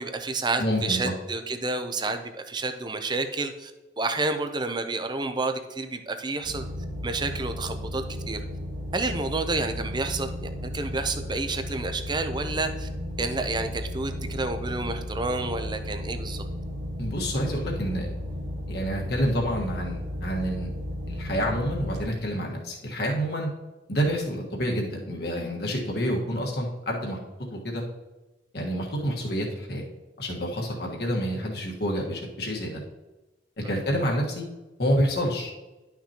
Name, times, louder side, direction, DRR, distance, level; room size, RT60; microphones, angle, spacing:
voice 1, 0.0-3.7 4.0-6.6 7.0-8.4 8.9-12.9 13.2-16.4 33.6-33.8, right 3 dB, 25° right, 8 dB, 0.6 m, -30 dB
voice 2, 0.6-1.1 17.0-18.1 18.7-20.7 21.1-23.5 23.9-27.2 27.5-27.8 28.5-29.8 30.2-32.8 33.7-34.4 34.8-35.5, equal, 60° left, -1 dB, 1.5 m, -28 dB
sound 1, 6.4-22.0, left 1 dB, 85° right, 1.6 m, -34 dB
11.0 x 5.9 x 2.9 m, 1.1 s
head